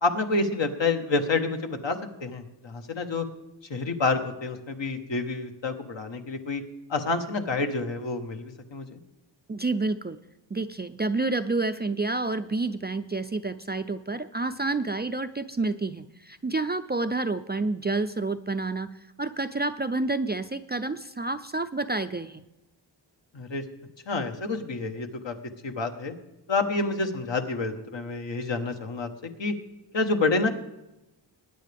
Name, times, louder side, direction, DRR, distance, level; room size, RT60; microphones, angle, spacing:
voice 1, 0.0-3.3 3.7-6.6 6.9-9.0 23.3-23.6 24.1-25.3 25.6-26.2 26.5-29.1 29.4-29.5 29.9-30.5, left 3 dB, 70° left, 5 dB, 1.3 m, -28 dB
voice 2, 9.5-10.2 10.5-22.4, right 3 dB, 25° right, 10 dB, 0.3 m, -29 dB
20.5 x 9.6 x 3.4 m, 0.95 s
wide cardioid pair, 120°, 45 cm